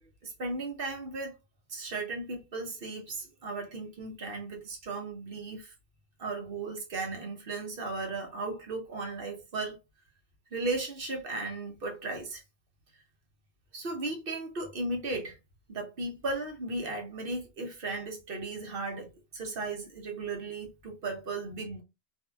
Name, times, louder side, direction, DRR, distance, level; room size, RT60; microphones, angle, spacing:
voice 1, 0.2-1.3 1.7-5.7 6.2-9.8 10.5-12.4 13.7-15.4 15.7-19.1 19.3-21.8, right 3 dB, 55° right, 1.0 m, -36 dB
2.7 x 2.6 x 2.2 m
omnidirectional pair, 1.1 m